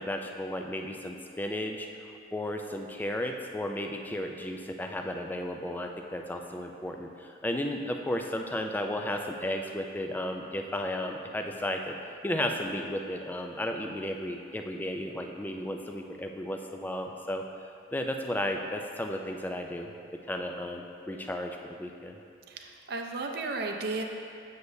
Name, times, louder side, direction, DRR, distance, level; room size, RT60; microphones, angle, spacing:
voice 1, 0.0-1.9 2.3-11.9 12.2-17.4 17.9-19.9 20.3-22.2, left 1 dB, 10° left, 3 dB, 0.3 m, -34 dB
voice 2, 22.5-24.0, right 3 dB, 55° right, 3 dB, 0.6 m, -34 dB
7.9 x 6.8 x 2.7 m, 2.5 s
head